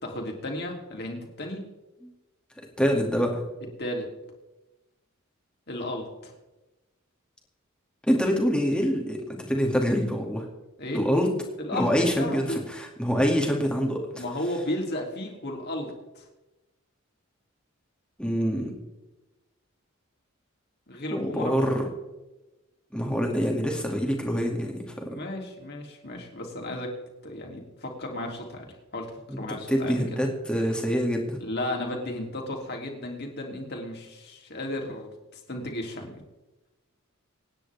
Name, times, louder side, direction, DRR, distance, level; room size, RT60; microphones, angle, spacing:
voice 1, 0.0-1.6 3.8-4.1 5.7-6.3 10.8-11.1 11.6-12.6 14.1-16.2 20.9-21.5 25.0-26.9 27.2-30.0 31.4-36.1, left 1 dB, 50° left, 0 dB, 3.1 m, -34 dB
voice 2, 2.8-3.4 8.1-9.2 9.5-10.5 10.9-11.3 11.7-14.2 18.2-18.7 21.1-21.9 22.9-24.8 25.1-25.2 29.3-29.4 29.7-31.4, equal, 5° left, 0 dB, 2.4 m, -25 dB
26.0 x 9.8 x 3.6 m, 1.0 s
head